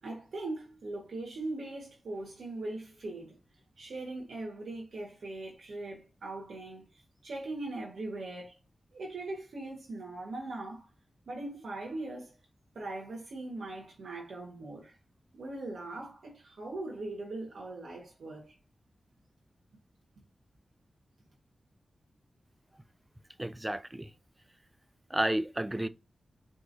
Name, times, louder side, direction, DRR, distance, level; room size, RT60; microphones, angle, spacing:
voice 1, 0.0-3.4 3.8-8.5 8.9-10.9 11.3-12.4 12.7-14.9 15.4-18.5, right 2 dB, 85° right, 1.4 m, -40 dB
voice 2, 23.4-24.1 25.1-25.9, right 1 dB, 15° right, 0.3 m, -31 dB
4.3 x 3.5 x 2.7 m
wide cardioid pair, 115°, 0 cm